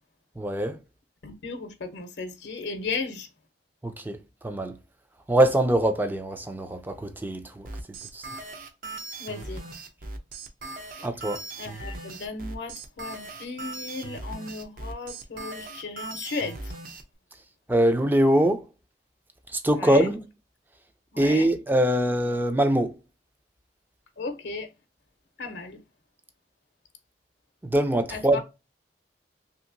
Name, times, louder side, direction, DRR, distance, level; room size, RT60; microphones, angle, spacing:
voice 1, 0.4-0.8 3.8-4.2 4.4-4.8 5.3-8.3 11.0-11.4 17.7-18.7 19.5-20.2 21.2-22.9 27.6-28.4, right 1 dB, 10° right, 0.4 m, -23 dB
voice 2, 1.2-3.3 9.2-9.6 11.6-16.7 19.7-20.1 21.1-21.5 24.2-24.7 25.4-25.8 28.1-28.4, left 4 dB, 70° left, 0.6 m, -35 dB
sound 1, 7.6-17.0, right 2 dB, 50° right, 0.6 m, -39 dB
3.0 x 2.7 x 2.5 m
head